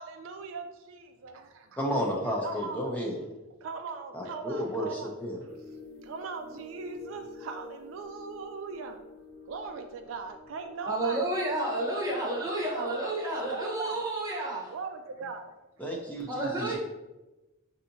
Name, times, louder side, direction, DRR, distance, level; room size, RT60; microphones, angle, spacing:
voice 1, 0.0-1.8 2.4-3.0 3.6-5.1 6.0-9.0 9.5-11.2 12.4-12.5 12.7-14.0 14.7-15.5, right 4 dB, 65° right, 6 dB, 0.3 m, -40 dB
voice 2, 1.8-3.2 4.1-5.4 15.8-16.8, equal, 5° left, -2 dB, 0.5 m, -32 dB
sound 1, 5.5-11.4, left 3 dB, 65° left, 0.8 m, -49 dB
voice 3, 10.9-14.7 16.3-16.8, right 1 dB, 15° right, -4 dB, 0.9 m, -30 dB
5.4 x 2.7 x 2.6 m, 1.0 s
head